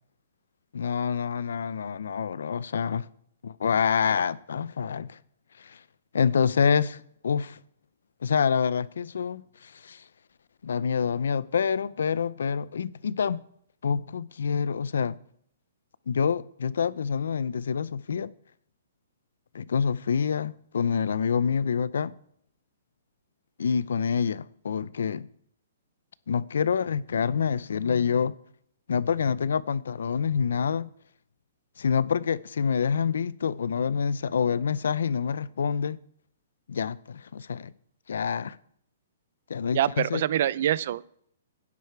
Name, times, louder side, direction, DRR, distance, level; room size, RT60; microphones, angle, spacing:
voice 1, 0.7-3.1 3.4-5.2 5.6-5.8 6.1-7.6 8.2-10.0 10.6-13.4 13.8-15.1 16.1-18.3 19.5-22.1 23.6-25.3 26.3-28.3 28.9-30.9 31.8-36.0 36.7-37.7 38.1-38.6 39.5-40.2, left 6 dB, 80° left, 0.5 m, -27 dB
voice 2, 39.7-41.0, right 11 dB, 45° right, 0.4 m, -25 dB
11.5 x 9.8 x 4.7 m
hypercardioid pair, 170°, 0 cm